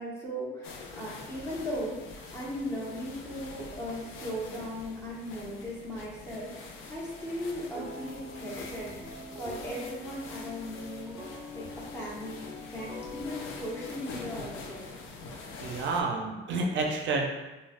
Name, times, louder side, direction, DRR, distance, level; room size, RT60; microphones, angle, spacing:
voice 1, 0.0-14.8, equal, 10° left, -6 dB, 1.0 m, -38 dB
sound 1, 0.6-16.0, left 3 dB, 90° left, 0.4 m, -45 dB
sound 2, 7.7-14.6, left 2 dB, 15° right, 0.5 m, -44 dB
voice 2, 15.6-17.2, right 3 dB, 70° right, 1 dB, 0.5 m, -29 dB
3.2 x 2.1 x 2.4 m, 1.1 s
cardioid pair, 90°, 20 cm